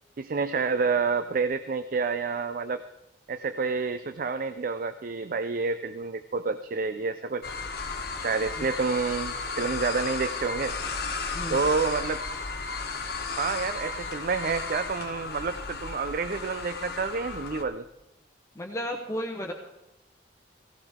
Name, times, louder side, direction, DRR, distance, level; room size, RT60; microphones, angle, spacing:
voice 1, 0.2-2.8 3.3-7.4 8.2-10.8 11.5-12.2 13.4-17.9, right 4 dB, 50° right, 10 dB, 0.5 m, -29 dB
sound 1, 7.4-17.6, left 4 dB, 60° left, 1.3 m, -34 dB
voice 2, 11.3-11.7 18.5-19.5, equal, 15° left, 0 dB, 1.0 m, -33 dB
17.0 x 15.0 x 3.6 m, 0.91 s
head